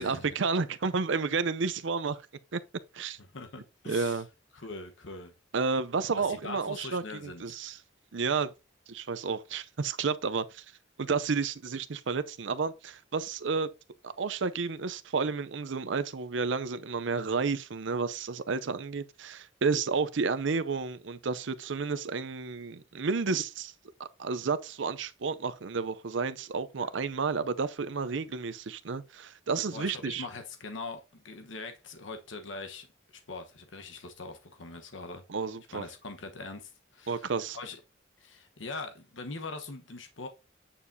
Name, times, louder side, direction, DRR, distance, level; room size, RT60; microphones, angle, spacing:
voice 1, 0.0-2.2 2.5-2.6 2.9-3.2 3.9-4.3 5.5-7.8 8.1-8.5 8.9-10.6 11.0-13.7 14.0-23.7 24.0-30.3 35.3-35.8 37.1-37.6, right 4 dB, 75° right, 0.6 m, -31 dB
voice 2, 3.3-4.2 4.5-5.3 6.2-7.8 26.8-26.9 29.7-32.9 33.1-35.2 35.7-37.8 38.2-40.3, left 3 dB, 80° left, 1.1 m, -42 dB
8.6 x 7.1 x 2.7 m
head